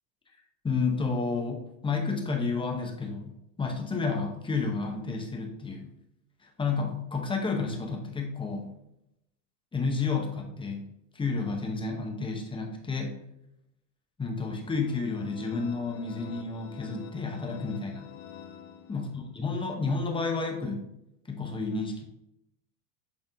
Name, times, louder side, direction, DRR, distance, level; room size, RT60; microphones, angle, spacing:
voice 1, 0.6-5.9 6.4-8.8 9.7-10.9 11.1-13.2 14.2-18.1 18.9-20.9 21.3-22.0, left 4 dB, 10° left, 2 dB, 0.9 m, -31 dB
sound 1, 14.6-19.4, left 9 dB, 50° left, 1.2 m, -47 dB
8.3 x 3.6 x 3.6 m, 0.82 s
supercardioid pair, 135°, 46 cm